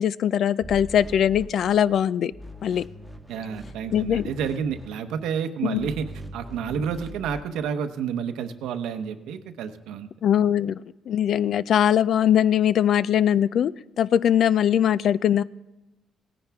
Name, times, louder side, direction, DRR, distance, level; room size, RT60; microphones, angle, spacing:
voice 1, 0.0-2.3 2.6-2.8 3.9-4.3 5.6-5.9 10.2-10.8 11.1-13.7 14.0-15.4, left 10 dB, 65° left, 19 dB, 0.3 m, -21 dB
sound 1, 0.6-2.0 2.3-5.2 5.7-7.4, right 1 dB, 5° left, 1.3 m, -42 dB
voice 2, 3.3-10.1, right 7 dB, 90° right, 8 dB, 0.9 m, -30 dB
17.5 x 10.0 x 3.5 m, 1.1 s
cardioid pair, 90°, 0 cm